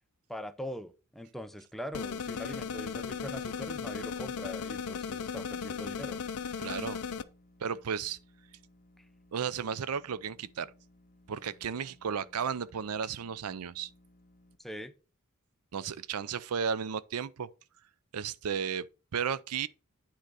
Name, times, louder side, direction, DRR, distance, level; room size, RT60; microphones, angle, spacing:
voice 1, 0.3-6.2 9.0-9.1 14.6-14.9, equal, ahead, 0.6 m, -42 dB
sound 1, 1.9-7.2, left 6 dB, 75° left, 0.5 m, -36 dB
sound 2, 2.5-14.6, left 1 dB, 40° left, 1.0 m, -62 dB
voice 2, 6.6-7.0 7.6-8.2 9.3-10.7 11.3-13.9 15.7-17.5 18.1-18.9 19.1-19.7, right 7 dB, 80° right, 0.5 m, -34 dB
9.0 x 3.9 x 4.8 m
head